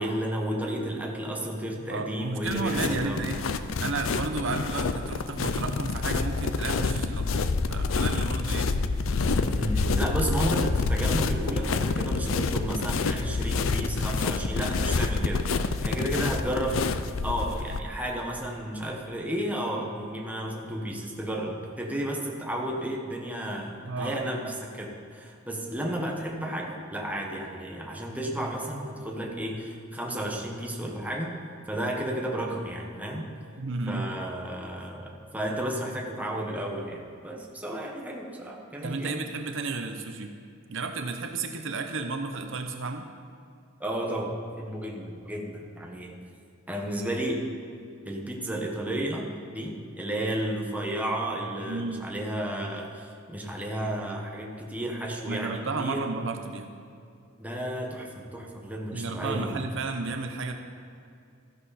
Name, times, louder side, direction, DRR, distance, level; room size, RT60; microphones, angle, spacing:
voice 1, 0.0-3.4 9.2-16.8 17.2-31.3 31.7-33.2 33.9-39.1 43.8-46.2 46.7-47.4 48.0-56.0 57.4-59.6, right 1 dB, 10° right, -1 dB, 1.4 m, -32 dB
voice 2, 1.9-3.4 3.8-8.7 23.8-24.5 33.6-34.2 38.8-40.3 40.7-43.1 51.7-52.0 55.3-56.7 58.9-60.5, right 3 dB, 65° right, 5 dB, 0.8 m, -33 dB
sound 1, 2.4-17.8, left 4 dB, 75° left, 0.5 m, -27 dB
13.5 x 10.5 x 4.3 m, 2.5 s
head